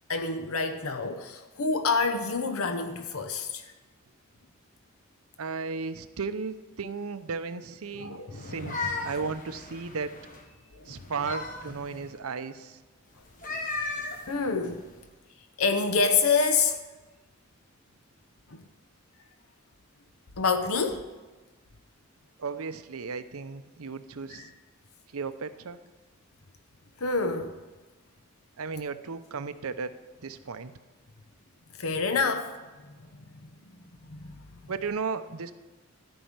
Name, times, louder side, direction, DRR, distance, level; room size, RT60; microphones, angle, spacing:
voice 1, 0.1-3.6 7.9-9.0 10.7-10.9 14.3-14.9 15.6-16.8 18.5-18.6 20.4-21.1 24.3-24.5 27.0-27.6 31.8-32.5 33.3-33.5 34.1-34.6, left 4 dB, 85° left, 7 dB, 0.8 m, -27 dB
voice 2, 5.4-10.2 10.9-12.8 22.4-24.5 25.1-25.8 28.6-30.7 34.7-35.5, right 5 dB, 85° right, 11 dB, 0.7 m, -35 dB
sound 1, 8.4-10.4 10.9-12.1 13.2-15.1, left 3 dB, 35° left, 1.2 m, -36 dB
13.5 x 5.5 x 8.9 m, 1.2 s
head